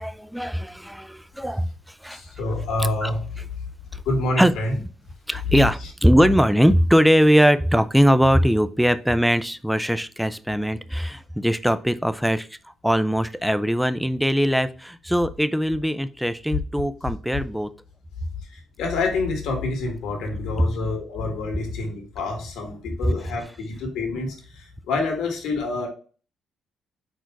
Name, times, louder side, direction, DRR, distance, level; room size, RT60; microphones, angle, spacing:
voice 1, 0.0-2.2 3.0-3.1 3.9-4.0 4.4-4.5 5.3-17.7 23.0-23.1, equal, ahead, 13 dB, 0.5 m, -21 dB
voice 2, 2.1-3.2 4.1-4.7 18.5-25.9, left 2 dB, 85° left, 2 dB, 2.0 m, -27 dB
4.6 x 4.4 x 4.6 m, 0.39 s
cardioid pair, 90°, 0 cm